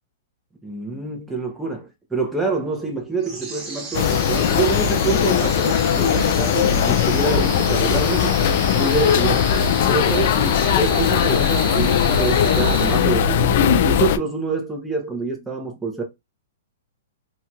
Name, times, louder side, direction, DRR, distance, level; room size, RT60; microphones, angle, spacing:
voice 1, 0.6-8.4 8.7-9.5 9.9-13.5 13.8-16.0, right 3 dB, 5° right, 0.8 m, -26 dB
sound 1, 3.2-13.4, right 3 dB, 20° right, 1.4 m, -33 dB
sound 2, 3.9-14.2, left 8 dB, 50° left, 0.4 m, -19 dB
2.8 x 2.8 x 2.3 m
hypercardioid pair, 150°, 0 cm